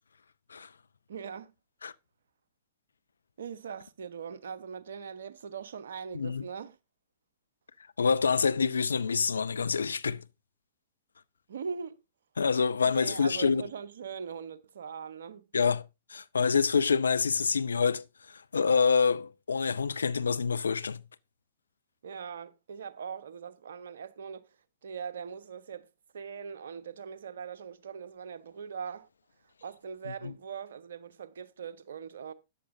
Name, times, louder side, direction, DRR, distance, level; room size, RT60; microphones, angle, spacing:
voice 1, 1.1-1.5 3.4-6.8 11.5-12.0 12.8-15.4 22.0-24.5 24.8-25.9 26.1-29.1 29.6-32.3, right 6 dB, 65° right, 1.0 m, -41 dB
voice 2, 8.0-10.2 12.4-13.6 15.5-15.8 16.1-21.0 30.1-30.3, left 5 dB, 75° left, 0.6 m, -27 dB
14.0 x 9.8 x 2.7 m
figure-of-eight pair, 105°, 0 cm